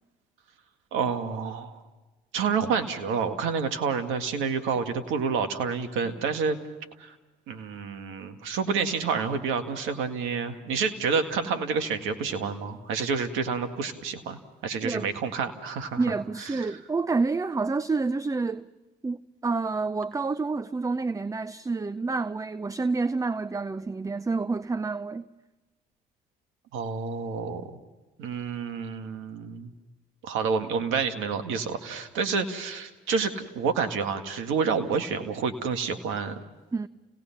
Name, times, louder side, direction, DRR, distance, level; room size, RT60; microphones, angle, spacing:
voice 1, 0.9-1.8 2.3-6.6 7.0-7.1 7.5-16.0 16.5-16.8 26.7-27.7 28.2-29.7 30.2-36.4, right 5 dB, 75° right, 1.9 m, -29 dB
voice 2, 16.0-18.7 19.0-25.2 36.7-36.9, right 3 dB, 15° right, 0.6 m, -28 dB
30.0 x 18.0 x 5.9 m
supercardioid pair, 65°, 20 cm